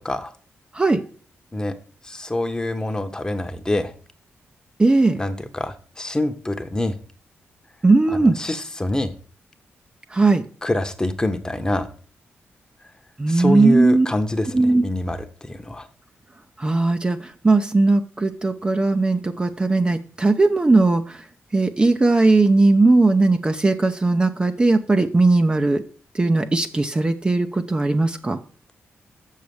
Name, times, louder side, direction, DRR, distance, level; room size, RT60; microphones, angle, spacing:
voice 1, 2.0-3.9 5.1-7.0 8.1-9.1 10.6-11.9 13.3-15.9, left 1 dB, 15° left, 8 dB, 1.0 m, -26 dB
voice 2, 4.8-5.2 7.8-8.4 10.1-10.4 13.2-14.1 14.5-14.8 16.6-17.2 17.4-21.0 21.5-25.8 26.1-28.4, right 3 dB, 20° right, 6 dB, 0.6 m, -18 dB
6.9 x 6.5 x 7.0 m, 0.42 s
cardioid pair, 100°, 5 cm